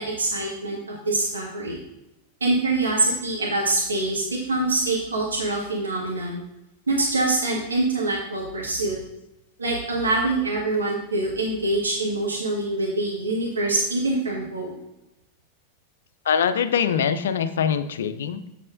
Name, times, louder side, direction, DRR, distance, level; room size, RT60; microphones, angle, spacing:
voice 1, 0.0-1.8 2.4-6.4 6.9-9.0 9.6-14.8, right 2 dB, 75° right, -3 dB, 1.7 m, -25 dB
voice 2, 16.3-18.4, left 7 dB, 65° left, 11 dB, 0.5 m, -23 dB
8.3 x 7.4 x 2.6 m, 0.92 s
figure-of-eight pair, 90°, 0 cm